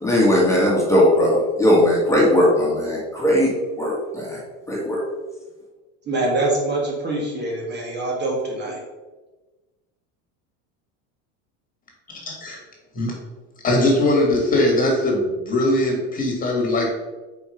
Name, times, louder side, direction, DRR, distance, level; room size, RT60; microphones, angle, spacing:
voice 1, 0.0-3.5 3.8-4.4 4.7-5.0, left 1 dB, 10° left, -5 dB, 1.7 m, -18 dB
voice 2, 6.1-8.8, right 2 dB, 30° right, -1 dB, 1.9 m, -24 dB
voice 3, 12.1-12.6 12.9-13.1 13.6-16.9, left 1 dB, 25° left, 0 dB, 1.9 m, -20 dB
5.2 x 4.5 x 5.0 m, 1.2 s
supercardioid pair, 125°, 34 cm